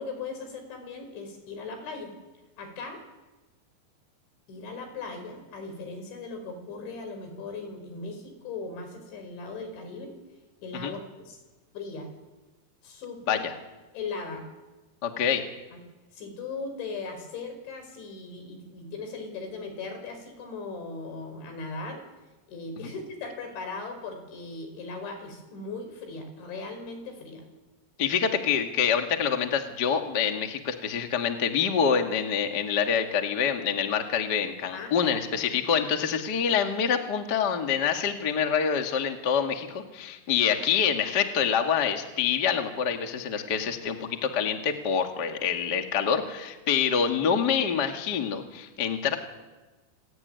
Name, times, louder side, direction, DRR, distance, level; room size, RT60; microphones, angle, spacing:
voice 1, 0.0-2.1 2.6-3.0 4.5-10.2 10.6-11.4 11.7-12.1 12.8-13.5 13.9-14.4 15.7-15.8 16.1-22.0 22.5-27.5 34.7-35.6 46.8-46.9, left 3 dB, 80° left, 6 dB, 7.2 m, -38 dB
voice 2, 15.0-15.4 28.0-49.2, left 7 dB, 45° left, 4 dB, 1.4 m, -26 dB
27.5 x 17.5 x 9.4 m, 1.2 s
omnidirectional pair, 5.2 m